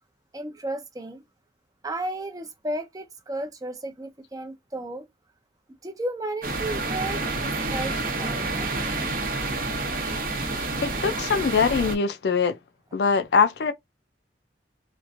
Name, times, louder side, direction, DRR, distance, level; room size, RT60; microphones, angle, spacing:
voice 1, 0.3-1.2 1.8-5.1 5.8-8.8, right 1 dB, 20° right, 0.5 m, -34 dB
sound 1, 6.4-12.0, right 2 dB, 50° right, 0.7 m, -28 dB
voice 2, 10.5-12.6 12.9-13.7, left 5 dB, 65° left, 0.4 m, -23 dB
2.9 x 2.4 x 2.4 m
head